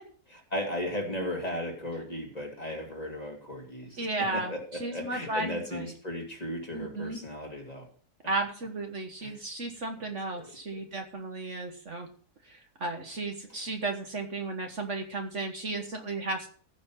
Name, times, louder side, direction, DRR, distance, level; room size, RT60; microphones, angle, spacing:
voice 1, 0.3-7.8 9.2-9.4 10.4-10.5 13.5-13.6, left 1 dB, 25° left, 1 dB, 2.5 m, -36 dB
voice 2, 4.0-4.5 4.8-5.9 6.7-7.2 8.2-12.1 12.8-16.5, right 2 dB, 50° right, 4 dB, 1.7 m, -34 dB
15.0 x 6.1 x 5.8 m, 0.44 s
omnidirectional pair, 1.7 m